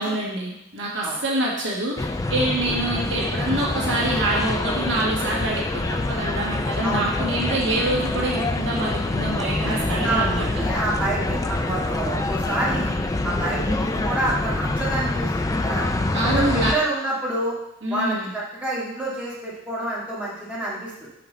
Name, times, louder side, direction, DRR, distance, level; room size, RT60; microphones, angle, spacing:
voice 1, 0.0-2.0 2.3-10.5 16.1-16.7 17.8-18.3, right 1 dB, 65° right, -4 dB, 1.7 m, -25 dB
sound 1, 2.0-16.7, left 2 dB, 15° left, 0.4 m, -26 dB
voice 2, 9.7-12.9 13.2-15.3 15.6-15.8 16.2-17.6 17.9-21.1, right 2 dB, 10° right, -8 dB, 1.8 m, -28 dB
5.8 x 4.8 x 5.6 m, 0.81 s
head